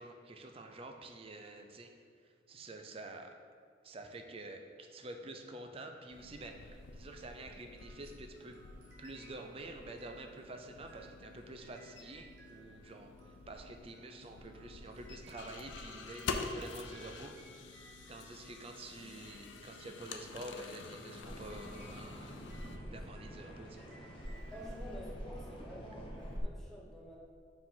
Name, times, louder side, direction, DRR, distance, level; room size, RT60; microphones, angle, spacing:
voice 1, 0.0-1.9 2.2-3.3 3.8-8.6 9.0-17.6 18.1-22.3 22.9-23.9, right 2 dB, 30° right, 4 dB, 0.4 m, -48 dB
sound 1, 6.1-22.8, left 4 dB, 75° left, 0.4 m, -47 dB
sound 2, 7.8-19.7 20.3-25.6, right 2 dB, 65° right, 1.1 m, -63 dB
sound 3, 21.1-26.4, equal, 30° left, 0.8 m, -46 dB
voice 2, 24.5-27.2, equal, ahead, -4 dB, 0.9 m, -49 dB
4.8 x 3.8 x 5.6 m, 2.1 s
head